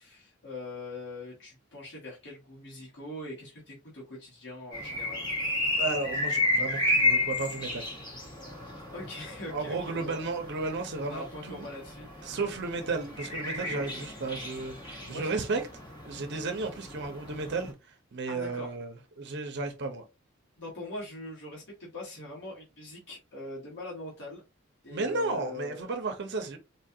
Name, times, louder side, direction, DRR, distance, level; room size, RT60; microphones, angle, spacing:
voice 1, 0.0-5.3 8.9-10.3 11.0-12.1 15.0-15.3 18.3-18.7 20.6-24.4 24.8-25.9, left 2 dB, 60° left, 1.4 m, -42 dB
sound 1, 4.7-17.7, left 2 dB, 20° left, 1.2 m, -33 dB
voice 2, 5.8-7.9 9.5-11.7 12.2-15.6 16.1-20.0 24.9-26.6, right 3 dB, 55° right, 0.7 m, -33 dB
4.1 x 2.4 x 2.7 m
head